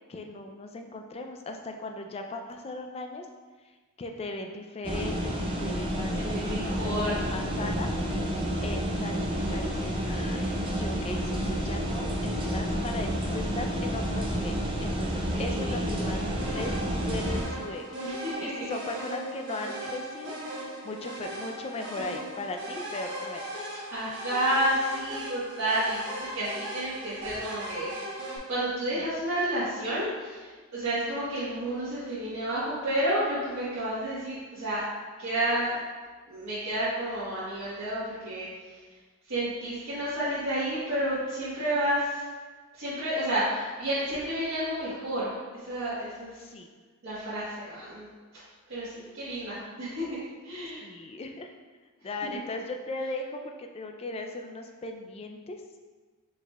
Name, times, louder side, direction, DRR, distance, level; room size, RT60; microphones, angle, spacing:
voice 1, 0.1-3.3 4.0-7.9 8.6-18.0 18.4-23.6 28.9-29.0 46.4-46.7 50.8-51.5 52.0-55.6, left 2 dB, 30° left, 4 dB, 0.3 m, -38 dB
sound 1, 4.8-17.4, equal, 25° right, 0.6 m, -30 dB
voice 2, 6.1-7.3 15.3-16.4 18.0-18.7 23.9-34.8 35.2-35.8 36.3-38.5 39.3-42.2 42.7-45.3 45.6-46.4 47.0-48.1 48.7-50.0 50.4-50.8, right 1 dB, 80° right, -13 dB, 1.3 m, -31 dB
sound 2, 16.4-28.4, right 1 dB, 55° right, 1.1 m, -38 dB
4.9 x 4.1 x 2.3 m, 1.4 s
head